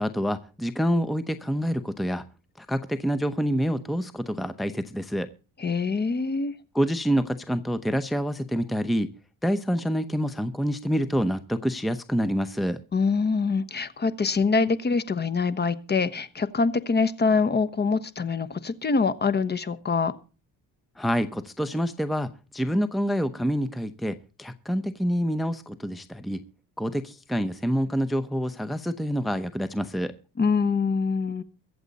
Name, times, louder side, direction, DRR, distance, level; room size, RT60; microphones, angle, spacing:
voice 1, 0.0-2.3 2.6-5.3 6.7-9.1 9.4-12.8 21.0-26.4 26.8-30.1, equal, ahead, 0.8 m, -27 dB
voice 2, 5.6-6.5 12.9-20.1 30.4-31.4, left 4 dB, 30° left, 1.2 m, -24 dB
23.5 x 8.1 x 4.1 m
cardioid pair, 120°, 35 cm